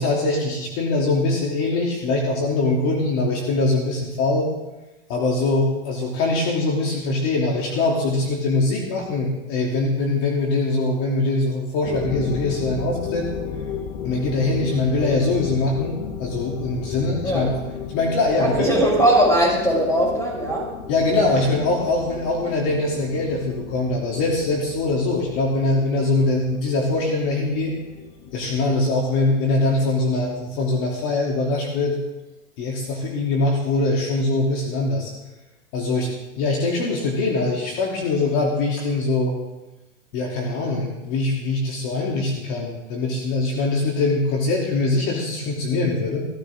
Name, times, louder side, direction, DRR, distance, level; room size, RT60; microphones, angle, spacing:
voice 1, 0.0-4.5 5.1-13.3 14.0-17.6 17.9-18.7 20.9-27.7 28.3-32.0 32.6-35.1 35.7-36.1 36.4-39.4 40.1-46.3, left 2 dB, 45° left, -1 dB, 3.2 m, -22 dB
sound 1, 11.8-29.2, left 7 dB, 65° left, 1.5 m, -34 dB
voice 2, 18.4-20.7, right 1 dB, 10° left, -2 dB, 6.0 m, -19 dB
16.5 x 14.5 x 3.8 m, 1.1 s
hypercardioid pair, 125°, 39 cm